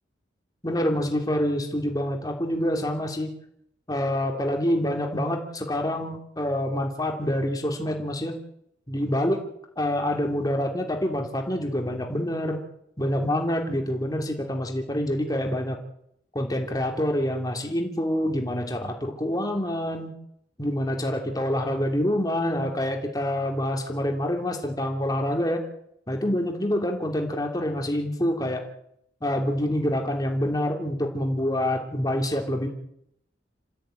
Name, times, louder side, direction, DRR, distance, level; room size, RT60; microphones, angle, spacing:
voice 1, 0.6-3.3 3.9-8.4 8.9-9.4 9.8-12.6 13.0-15.8 16.3-20.1 20.6-25.6 26.1-28.6 29.2-32.7, left 1 dB, 20° left, 2 dB, 2.9 m, -26 dB
27.5 x 14.5 x 9.1 m, 0.75 s
head